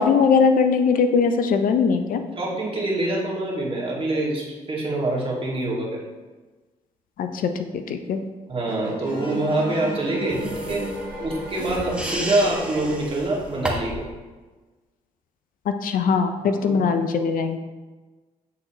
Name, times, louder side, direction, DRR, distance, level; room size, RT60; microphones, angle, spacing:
voice 1, 0.0-2.2 7.2-8.2 15.7-17.6, left 5 dB, 65° left, 7 dB, 0.6 m, -21 dB
voice 2, 2.4-6.0 8.5-10.9 11.2-14.1 16.4-16.8, right 2 dB, 35° right, -3 dB, 2.0 m, -25 dB
sound 1, 8.7-13.6, right 3 dB, 65° right, 1.0 m, -35 dB
sound 2, 9.0-13.4, left 3 dB, 35° left, 1.3 m, -37 dB
sound 3, 10.3-14.1, right 1 dB, 5° right, 1.1 m, -33 dB
8.4 x 3.9 x 3.0 m, 1.2 s
supercardioid pair, 55°, 16 cm